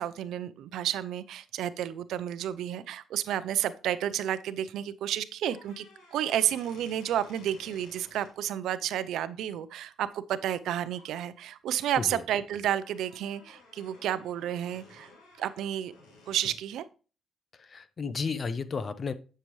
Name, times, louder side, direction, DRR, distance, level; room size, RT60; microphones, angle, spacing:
voice 1, 0.0-5.9 6.1-15.1 15.4-15.9 16.3-16.8, right 11 dB, 80° right, 14 dB, 0.5 m, -31 dB
sound 1, 5.4-8.3 10.5-10.6 10.9-11.2 11.7-16.6, left 3 dB, 85° left, 3.1 m, -55 dB
voice 2, 17.5-19.1, left 5 dB, 40° left, 14 dB, 0.7 m, -33 dB
8.2 x 6.6 x 3.1 m, 0.35 s
cardioid pair, 90°, 0 cm